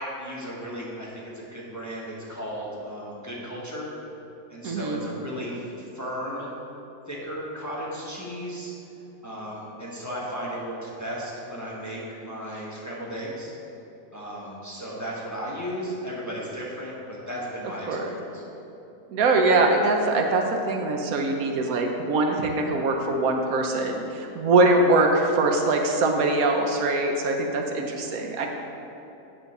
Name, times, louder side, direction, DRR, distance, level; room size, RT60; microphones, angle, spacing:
voice 1, 0.0-3.9 4.5-6.5 7.1-8.7 9.2-13.5 14.1-18.4, equal, 15° left, -5 dB, 1.0 m, -35 dB
voice 2, 4.6-5.0 17.9-18.2 19.1-28.5, right 2 dB, 75° right, 3 dB, 1.2 m, -23 dB
8.2 x 3.9 x 6.6 m, 2.9 s
omnidirectional pair, 1.5 m